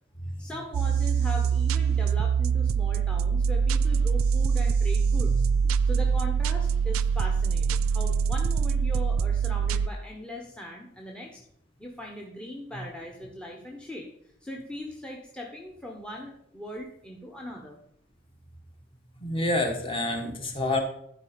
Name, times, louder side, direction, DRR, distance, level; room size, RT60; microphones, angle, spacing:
voice 1, 0.4-5.5 5.8-11.4 11.8-14.1 14.4-17.8, left 1 dB, 5° left, 1 dB, 0.9 m, -40 dB
sound 1, 0.7-9.9, right 6 dB, 85° right, 0.3 m, -24 dB
voice 2, 19.2-20.8, left 2 dB, 25° left, 3 dB, 1.3 m, -28 dB
12.0 x 4.7 x 5.0 m, 0.69 s
head